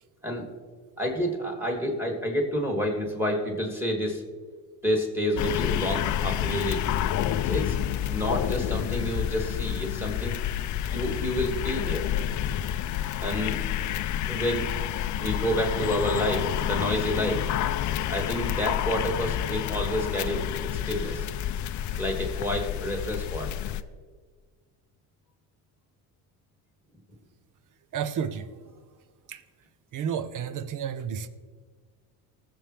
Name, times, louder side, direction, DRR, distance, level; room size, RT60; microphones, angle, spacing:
voice 1, 1.0-4.2 4.8-6.8 7.5-10.4 10.9-12.1 13.2-13.6 14.3-14.7 15.2-17.5 18.1-21.3 22.0-23.5, equal, 5° right, 3.1 m, -29 dB
sound 1, 5.4-23.8, left 11 dB, 40° left, 0.6 m, -29 dB
voice 2, 27.9-28.5 29.3-29.4 29.9-31.3, right 8 dB, 45° right, 1.0 m, -31 dB
19.5 x 7.8 x 3.4 m
supercardioid pair, 90°, 45 cm